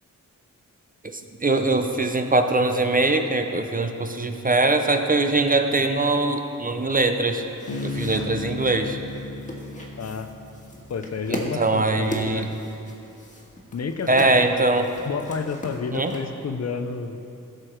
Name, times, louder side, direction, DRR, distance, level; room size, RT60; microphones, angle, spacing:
voice 1, 1.0-7.4 7.8-9.0 11.3-12.5 14.1-14.9 15.9-16.1, right 2 dB, 25° right, 6 dB, 0.6 m, -22 dB
sound 1, 7.0-16.2, left 1 dB, 20° left, 1.6 m, -38 dB
Bass guitar, 7.7-11.2, left 2 dB, 80° left, 1.3 m, -34 dB
voice 2, 10.0-10.3 10.9-12.5 13.7-14.3 15.1-17.2, left 5 dB, 50° left, 8 dB, 0.6 m, -30 dB
16.0 x 6.6 x 4.5 m, 2.8 s
wide cardioid pair, 110°, 33 cm